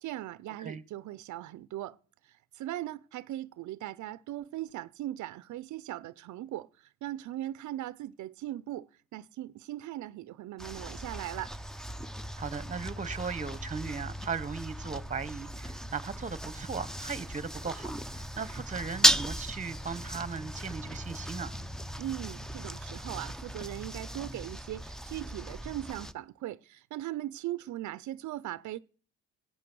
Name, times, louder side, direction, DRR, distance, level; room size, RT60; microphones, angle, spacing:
voice 1, 0.0-2.0 2.2-11.6 22.0-28.8, right 14 dB, 70° right, 0.5 m, -39 dB
sound 1, 10.6-26.1, equal, ahead, 0.6 m, -35 dB
voice 2, 12.4-21.5, right 5 dB, 25° right, 1.0 m, -37 dB
15.5 x 8.5 x 6.2 m
cardioid pair, 90°, 30 cm